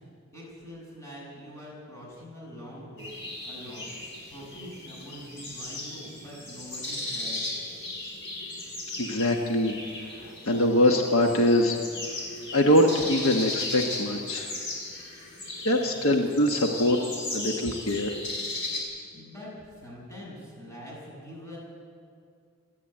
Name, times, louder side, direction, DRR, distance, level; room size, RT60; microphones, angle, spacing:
voice 1, 0.3-3.1 3.4-3.9 4.3-7.5 15.7-16.0 19.1-19.5 19.8-21.6, equal, 15° left, -4 dB, 7.1 m, -44 dB
sound 1, 3.0-18.8, left 2 dB, 55° left, 5.2 m, -37 dB
voice 2, 9.0-9.7 10.5-11.8 12.5-14.5 15.6-17.0 17.3-18.1, left 1 dB, 70° left, 3 dB, 1.3 m, -23 dB
27.0 x 11.0 x 8.8 m, 2.3 s
head